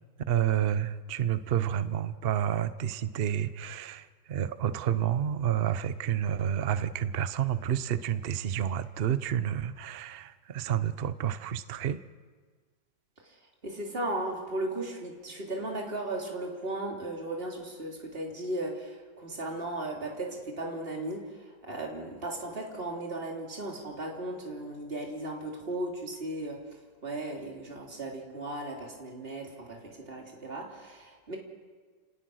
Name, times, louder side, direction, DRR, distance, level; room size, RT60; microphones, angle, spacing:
voice 1, 0.3-12.0, right 10 dB, 65° right, 13 dB, 0.6 m, -29 dB
voice 2, 13.6-26.6 27.0-31.4, right 1 dB, 30° right, -1 dB, 3.4 m, -36 dB
29.0 x 19.0 x 6.4 m, 1.5 s
omnidirectional pair, 2.0 m